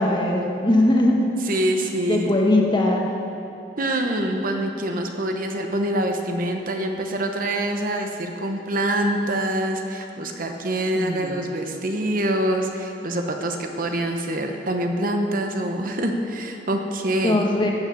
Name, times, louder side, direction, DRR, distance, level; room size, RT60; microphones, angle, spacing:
voice 1, 0.0-1.3 2.1-3.1 10.9-11.4 17.2-17.7, left 1 dB, 25° left, 0 dB, 1.3 m, -20 dB
voice 2, 1.5-2.3 3.8-17.4, right 1 dB, 50° right, 4 dB, 1.0 m, -25 dB
15.5 x 6.5 x 6.9 m, 2.8 s
head